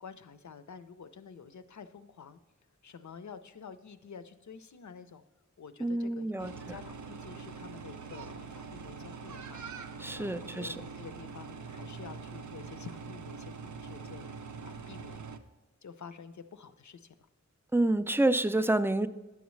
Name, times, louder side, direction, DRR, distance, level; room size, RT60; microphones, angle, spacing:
voice 1, 0.0-2.4 2.8-5.2 5.6-9.6 10.1-14.3 14.6-15.3 15.8-17.1, left 6 dB, 75° left, 11 dB, 0.5 m, -49 dB
voice 2, 5.8-6.5 10.0-10.8 17.7-19.1, right 2 dB, 10° right, 12 dB, 0.3 m, -28 dB
sound 1, 6.4-15.4, right 5 dB, 75° right, 0.5 m, -44 dB
11.0 x 7.1 x 3.1 m, 1.1 s
wide cardioid pair, 50°, 29 cm